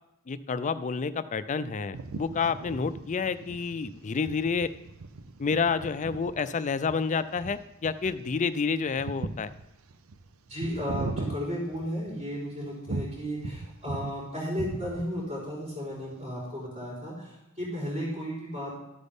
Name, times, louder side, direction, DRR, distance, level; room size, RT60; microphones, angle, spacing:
voice 1, 0.3-4.7 5.4-9.5, left 5 dB, 35° left, 14 dB, 0.4 m, -29 dB
sound 1, 1.9-12.3 12.9-14.2 14.5-15.3, right 3 dB, 70° right, 0.6 m, -39 dB
voice 2, 10.5-18.7, equal, 35° right, -6 dB, 3.9 m, -34 dB
13.0 x 7.9 x 3.6 m, 0.89 s
head